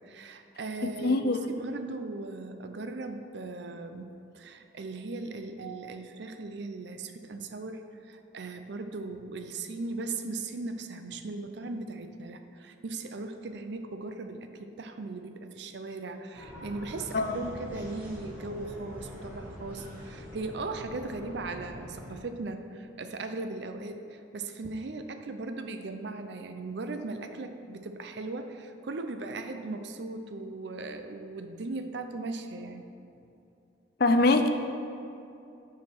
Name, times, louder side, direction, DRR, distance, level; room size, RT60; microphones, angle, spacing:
voice 1, 0.0-32.8, right 3 dB, 60° right, 7 dB, 0.5 m, -38 dB
voice 2, 0.8-1.4 17.1-17.4 34.0-34.5, left 2 dB, 50° left, 7 dB, 0.5 m, -23 dB
sound 1, 16.3-22.1, equal, 10° right, 1.9 m, -44 dB
7.1 x 4.8 x 6.2 m, 2.7 s
head